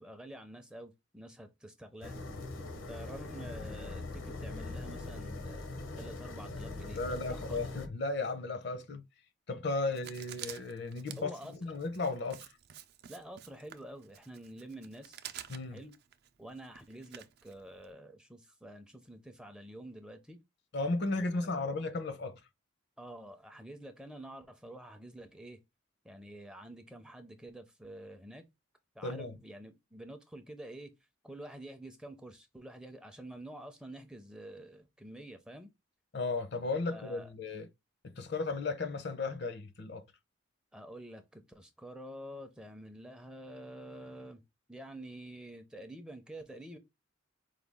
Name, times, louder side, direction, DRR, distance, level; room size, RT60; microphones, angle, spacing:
voice 1, 0.0-2.2 2.9-7.6 9.9-10.1 11.2-11.6 13.1-15.2 15.7-15.9 16.4-20.4 21.1-21.7 23.0-25.6 26.0-28.5 28.9-30.9 31.2-35.7 36.9-37.3 40.7-44.4 44.7-46.8, right 1 dB, 5° right, 0.5 m, -48 dB
sound 1, 2.0-7.9, left 2 dB, 80° left, 1.0 m, -42 dB
voice 2, 6.9-9.0 9.5-12.5 15.5-15.8 20.7-22.4 29.0-29.4 36.1-37.7 38.0-40.0, left 3 dB, 60° left, 0.7 m, -35 dB
Writing, 9.9-17.9, right 10 dB, 55° right, 0.5 m, -49 dB
4.8 x 2.3 x 3.4 m
head